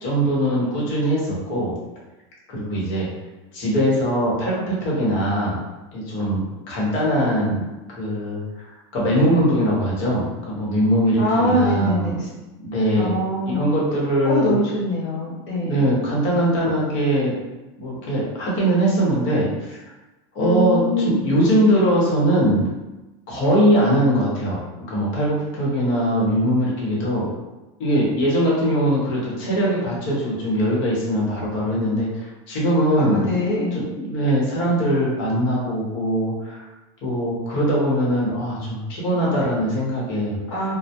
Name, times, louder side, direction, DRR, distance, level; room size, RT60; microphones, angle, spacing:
voice 1, 0.0-1.7 2.5-3.1 3.5-5.6 5.9-7.6 8.0-8.7 8.9-12.2 12.6-14.6 15.6-17.3 17.8-19.8 20.3-22.7 23.3-24.6 24.9-27.3 27.8-36.7 37.0-40.4, equal, 45° left, -5 dB, 0.9 m, -21 dB
voice 2, 11.2-12.3 12.9-13.6 14.2-15.8 20.4-21.4 33.0-33.8 40.5-40.7, equal, 85° left, -8 dB, 1.0 m, -23 dB
2.2 x 2.0 x 2.8 m, 1.1 s
supercardioid pair, 165°, 15 cm